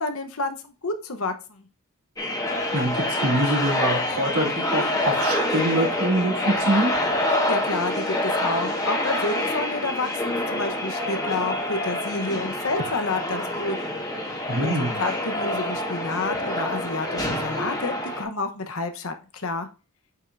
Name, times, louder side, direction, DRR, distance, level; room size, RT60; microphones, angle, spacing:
voice 1, 0.0-1.7 7.3-13.8 14.6-19.7, left 3 dB, 65° left, 7 dB, 1.1 m, -29 dB
sound 1, 2.2-18.2, left 1 dB, 15° left, 1.7 m, -26 dB
voice 2, 2.7-6.9 14.5-14.9, right 1 dB, 85° right, -3 dB, 2.8 m, -24 dB
8.2 x 5.7 x 2.7 m, 0.32 s
head